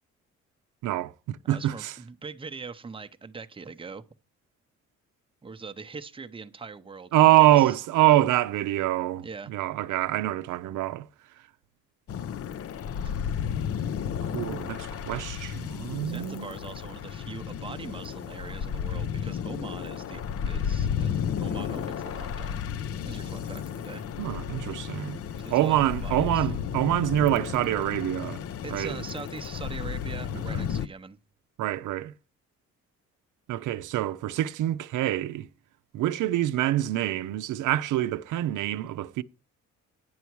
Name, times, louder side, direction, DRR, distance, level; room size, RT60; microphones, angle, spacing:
voice 1, 0.8-1.9 7.1-11.1 14.3-16.5 24.2-25.2 25.5-28.4 28.7-29.0 30.5-30.7 31.6-32.1 33.5-35.5 35.9-39.2, right 14 dB, 85° right, 0.6 m, -25 dB
voice 2, 1.4-4.0 5.4-7.8 9.2-9.5 16.1-22.6 23.1-24.0 25.4-26.5 28.6-31.2, right 4 dB, 15° right, 0.7 m, -42 dB
sound 1, 12.1-30.9, left 8 dB, 50° left, 0.6 m, -33 dB
9.5 x 6.9 x 4.6 m
cardioid pair, 90°, 30 cm